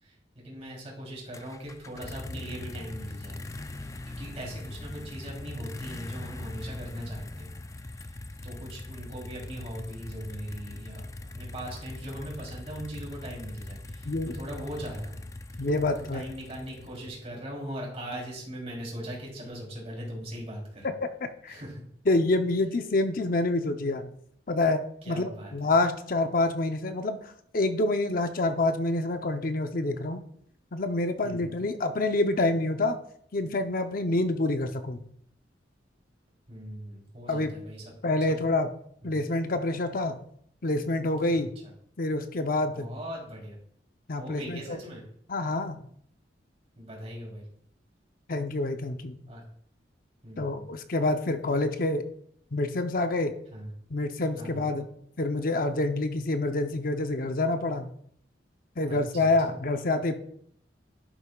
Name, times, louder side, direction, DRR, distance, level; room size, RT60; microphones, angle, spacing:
voice 1, 0.0-3.4 3.8-7.5 8.4-15.2 16.0-20.9 21.5-21.8 25.0-25.5 31.2-31.6 36.5-37.8 38.2-38.3 39.0-39.2 41.3-41.4 42.6-43.6 44.2-45.0 46.8-47.4 49.3-49.4 50.2-50.7 53.5-53.7 54.4-54.7 58.9-59.5, equal, 35° right, -3 dB, 3.5 m, -40 dB
sound 1, 1.3-17.3, left 2 dB, 15° left, 0.4 m, -41 dB
voice 2, 14.0-14.4 15.6-16.2 21.0-21.6 22.1-24.1 24.5-27.2 27.5-30.2 30.7-33.0 33.3-35.0 37.3-37.5 38.0-38.7 39.0-40.2 40.6-41.6 42.0-42.9 44.1-44.8 45.3-45.9 48.3-49.1 50.4-52.0 52.5-53.3 53.9-54.8 55.2-57.9 58.8-60.2, left 2 dB, 50° left, 7 dB, 0.8 m, -27 dB
11.0 x 8.7 x 2.4 m, 0.66 s
head